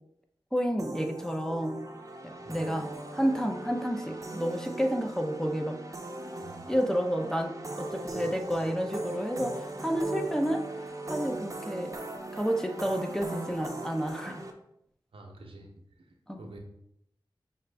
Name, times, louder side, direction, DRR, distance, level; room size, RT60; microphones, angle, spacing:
voice 1, 0.5-1.8 2.2-5.8 6.7-12.0 12.3-14.4 16.3-16.4, equal, 5° left, 3 dB, 0.6 m, -30 dB
sound 1, 0.8-14.5, right 2 dB, 35° right, 0.6 m, -39 dB
voice 2, 15.1-15.7 16.4-16.6, right 2 dB, 85° right, 2 dB, 0.7 m, -47 dB
5.6 x 2.5 x 3.3 m, 0.75 s
wide cardioid pair, 55°, 9 cm